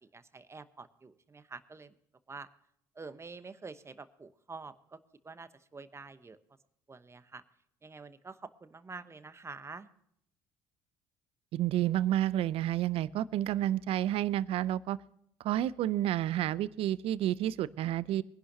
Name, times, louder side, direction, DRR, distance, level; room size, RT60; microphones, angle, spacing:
voice 1, 0.0-1.9 2.3-2.5 3.0-5.0 5.2-6.4 6.9-7.4 7.8-9.9, right 4 dB, 25° right, 12 dB, 1.0 m, -47 dB
voice 2, 11.5-15.0 15.4-18.2, right 12 dB, 65° right, 19 dB, 0.6 m, -30 dB
22.5 x 11.0 x 2.8 m, 0.71 s
hypercardioid pair, 65°, 11 cm